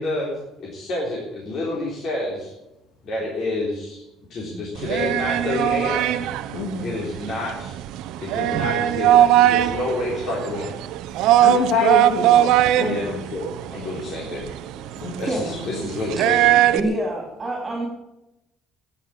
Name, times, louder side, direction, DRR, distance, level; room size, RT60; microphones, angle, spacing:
voice 1, 0.0-2.5 3.0-4.0 4.3-6.1 6.8-7.7 8.2-10.7 12.9-13.5 13.7-14.5 15.2-16.5, left 2 dB, 40° left, -4 dB, 3.8 m, -28 dB
sound 1, 4.8-16.8, right 12 dB, 70° right, 0.9 m, -20 dB
voice 2, 6.5-7.1 11.1-13.2 15.0-15.9, left 5 dB, 70° left, -1 dB, 3.1 m, -27 dB
voice 3, 16.7-17.9, right 1 dB, 15° right, -2 dB, 3.6 m, -26 dB
13.5 x 10.0 x 8.7 m, 0.94 s
cardioid pair, 175°, 0 cm